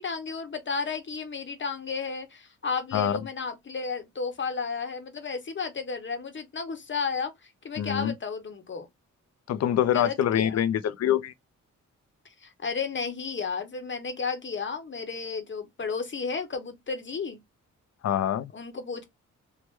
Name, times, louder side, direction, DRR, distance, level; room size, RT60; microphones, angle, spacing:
voice 1, 0.0-8.9 9.9-10.8 12.4-17.4 18.5-19.0, left 5 dB, 40° left, 0.9 m, -33 dB
voice 2, 7.8-8.1 9.5-11.3 18.0-18.5, left 10 dB, 55° left, 0.4 m, -25 dB
3.1 x 2.1 x 3.1 m
cardioid pair, 85°, 30 cm